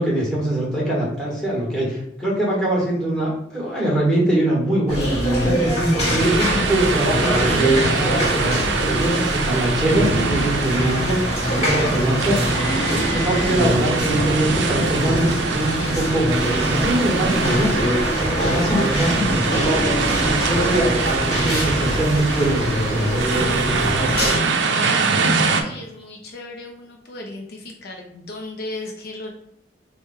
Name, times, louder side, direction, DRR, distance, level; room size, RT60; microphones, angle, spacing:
voice 1, 0.0-5.7 6.1-8.5 8.8-12.6 12.9-16.4 16.7-17.8 18.1-19.9 20.2-23.4, right 1 dB, 5° left, -5 dB, 1.2 m, -23 dB
sound 1, 4.9-24.4, right 1 dB, 35° left, 1.1 m, -23 dB
sound 2, 6.2-25.6, right 4 dB, 75° right, 0.5 m, -24 dB
voice 2, 24.1-29.3, left 2 dB, 55° left, 2 dB, 0.5 m, -35 dB
3.4 x 2.2 x 4.4 m, 0.78 s
head